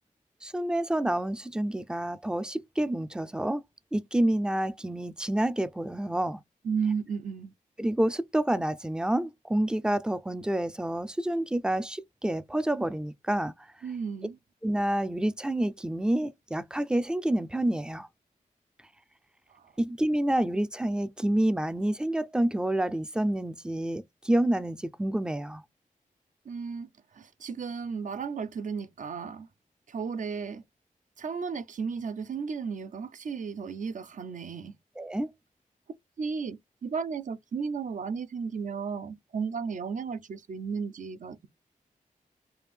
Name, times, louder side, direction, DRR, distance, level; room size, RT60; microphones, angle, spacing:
voice 1, 0.4-3.6 3.9-6.4 7.8-13.5 14.6-18.1 19.8-25.6 35.0-35.3, right 1 dB, 5° right, 0.3 m, -28 dB
voice 2, 6.6-7.5 13.8-14.4 19.5-19.7 26.5-29.5 29.9-30.6 31.2-34.7 36.2-41.5, right 5 dB, 65° right, 0.5 m, -34 dB
3.4 x 2.6 x 3.3 m
wide cardioid pair, 110°, 14 cm